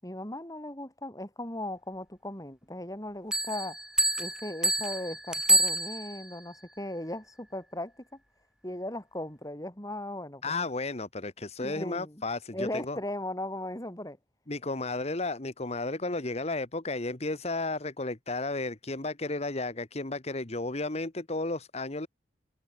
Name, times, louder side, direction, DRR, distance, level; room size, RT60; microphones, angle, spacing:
voice 1, 0.0-3.8 4.2-7.9 8.6-10.6 11.6-12.2 12.5-14.2, left 1 dB, 20° left, 7.6 m, -37 dB
sound 1, 3.3-6.3, right 1 dB, 5° right, 2.1 m, -27 dB
voice 2, 10.4-13.0 14.5-22.1, left 2 dB, 35° left, 1.4 m, -33 dB
head